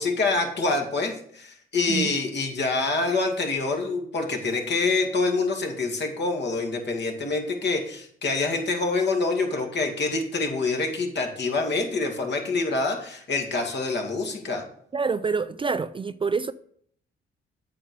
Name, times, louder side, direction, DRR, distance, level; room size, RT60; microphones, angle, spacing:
voice 1, 0.0-14.6, left 3 dB, 55° left, 2.3 m, -26 dB
voice 2, 14.9-16.5, right 4 dB, 25° right, 0.4 m, -26 dB
8.5 x 6.4 x 5.4 m
cardioid pair, 85°, 21 cm